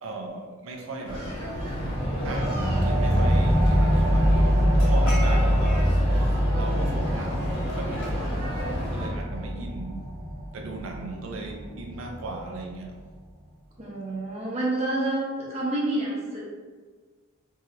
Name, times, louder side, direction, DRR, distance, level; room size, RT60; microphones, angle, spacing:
voice 1, 0.0-1.3 2.2-4.5 4.7-5.9 6.6-8.2 8.9-10.1 10.5-13.0, right 3 dB, 65° right, 2 dB, 0.5 m, -37 dB
sound 1, 1.0-9.1, equal, 65° left, 1.2 m, -32 dB
sound 2, 1.5-12.6, equal, 5° left, 0.5 m, -24 dB
voice 2, 13.8-16.4, right 2 dB, 30° right, -6 dB, 0.8 m, -28 dB
3.0 x 2.8 x 2.5 m, 1.5 s
head